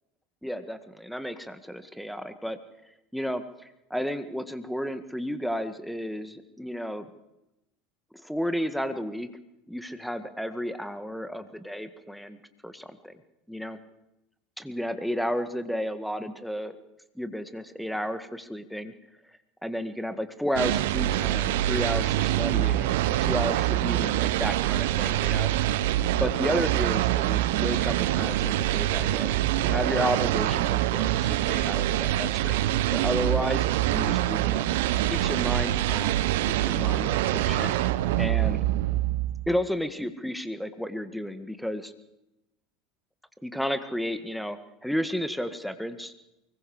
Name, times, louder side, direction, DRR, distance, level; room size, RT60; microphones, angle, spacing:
voice 1, 0.4-2.6 3.1-7.1 8.1-9.3 9.7-13.1 13.5-13.8 14.6-16.8 17.2-18.9 19.6-25.5 26.2-32.6 32.9-33.7 33.9-34.8 35.1-36.2 36.6-37.7 38.2-38.7 39.5-41.9 43.4-46.1, equal, ahead, 10 dB, 1.9 m, -32 dB
sound 1, 20.6-39.6, right 14 dB, 65° right, 0.9 m, -25 dB
24.0 x 22.0 x 5.0 m, 0.89 s
figure-of-eight pair, 75°, 0 cm